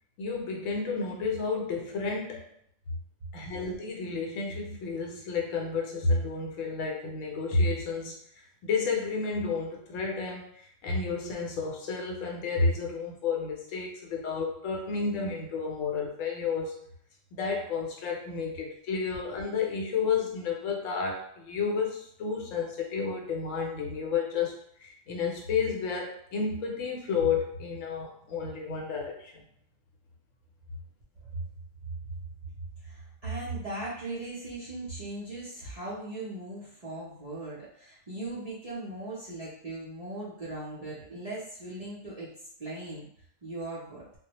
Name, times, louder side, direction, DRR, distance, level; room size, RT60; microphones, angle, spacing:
voice 1, 0.2-2.5 3.3-8.1 8.6-16.7 17.3-24.5 24.8-29.4, left 4 dB, 80° left, 0 dB, 1.0 m, -31 dB
voice 2, 32.8-42.3 42.6-43.1 43.4-44.1, right 2 dB, 45° right, -9 dB, 0.5 m, -38 dB
2.2 x 2.1 x 2.8 m, 0.66 s
omnidirectional pair, 1.3 m